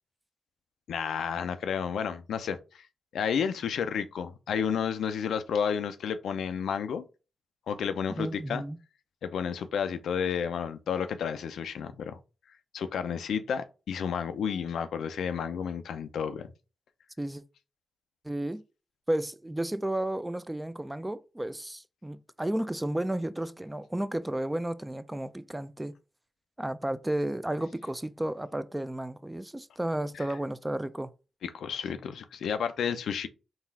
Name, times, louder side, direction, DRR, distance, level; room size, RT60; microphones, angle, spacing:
voice 1, 0.9-2.9 3.1-7.1 7.7-8.6 9.2-12.2 12.7-16.5 31.4-33.3, left 7 dB, 85° left, 0.4 m, -31 dB
voice 2, 8.1-8.8 17.2-17.4 18.2-18.6 19.1-25.9 26.6-31.1, right 1 dB, 15° right, 0.4 m, -32 dB
4.0 x 2.4 x 4.1 m
cardioid pair, 50°, 0 cm